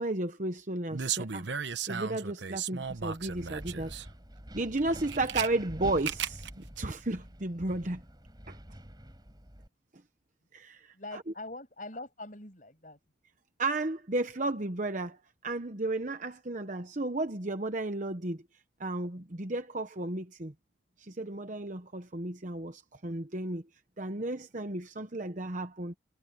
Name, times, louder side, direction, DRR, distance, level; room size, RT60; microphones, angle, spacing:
voice 1, 0.0-3.9 4.5-8.0 8.5-8.6 10.5-11.2 13.6-15.2 15.4-18.4 18.8-20.5 21.0-23.6 24.0-25.9, right 2 dB, 40° right, 1.0 m, -33 dB
sound 1, 0.9-4.1 4.8-5.5 6.0-6.5 6.8-6.9, right 7 dB, 70° right, 1.0 m, -35 dB
Wind, 2.8-9.7, equal, 20° right, 6.5 m, -47 dB
voice 2, 10.9-13.0, left 2 dB, 45° left, 7.0 m, -43 dB
head